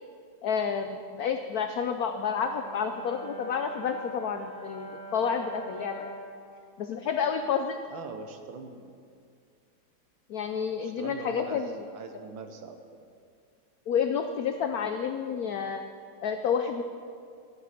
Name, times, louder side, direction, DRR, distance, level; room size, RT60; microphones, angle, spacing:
voice 1, 0.4-6.1 6.8-7.8 10.3-11.8 13.9-15.8 16.2-16.8, left 6 dB, 80° left, 7 dB, 0.8 m, -30 dB
Brass instrument, 2.1-6.4, right 2 dB, 65° left, 2.3 m, -43 dB
voice 2, 7.9-9.0 10.8-13.1, right 4 dB, 75° right, 6 dB, 1.6 m, -42 dB
13.0 x 8.7 x 5.8 m, 2.3 s
omnidirectional pair, 2.2 m